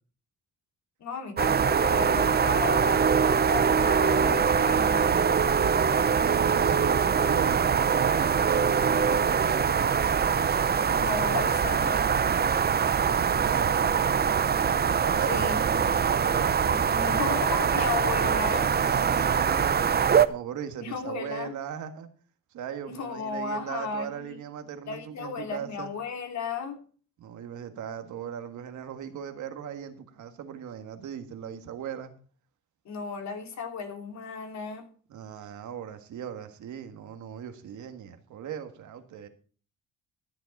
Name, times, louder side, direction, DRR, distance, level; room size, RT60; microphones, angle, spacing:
voice 1, 1.0-5.2 10.8-12.2 15.3-15.6 16.7-18.7 20.8-21.5 22.9-24.1 24.9-26.8 32.8-34.8, left 5 dB, 65° left, 2.9 m, -34 dB
sound 1, 1.4-20.3, right 7 dB, 30° right, 0.7 m, -23 dB
voice 2, 5.7-10.0 12.9-14.3 14.9-16.8 18.2-19.9 20.3-22.1 22.5-25.9 27.2-32.1 35.1-39.3, right 8 dB, 75° right, 1.7 m, -38 dB
13.5 x 7.7 x 5.3 m
cardioid pair, 90°, 30 cm